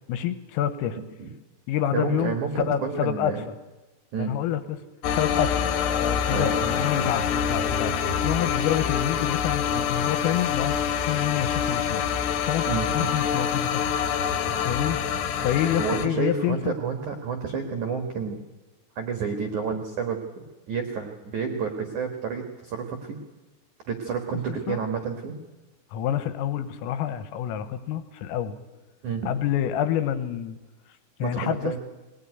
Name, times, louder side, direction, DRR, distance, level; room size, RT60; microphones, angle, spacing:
voice 1, 0.1-1.0 1.7-2.4 2.7-3.4 4.2-4.8 5.1-7.9 8.2-12.1 12.4-12.7 13.0-13.9 14.5-15.0 15.4-16.7 24.7-24.8 25.9-28.6 29.3-30.6 31.2-31.8, left 10 dB, 90° left, 11 dB, 3.7 m, -27 dB
voice 2, 0.9-1.3 1.9-3.4 4.1-4.4 6.3-6.5 12.7-13.1 15.8-18.4 18.9-20.2 20.7-23.2 23.9-25.4 29.0-29.3 31.2-31.8, right 6 dB, 80° right, 5 dB, 1.7 m, -30 dB
sound 1, 5.0-16.1, left 7 dB, 70° left, 3.0 m, -26 dB
20.0 x 18.5 x 9.4 m, 1.2 s
omnidirectional pair, 6.0 m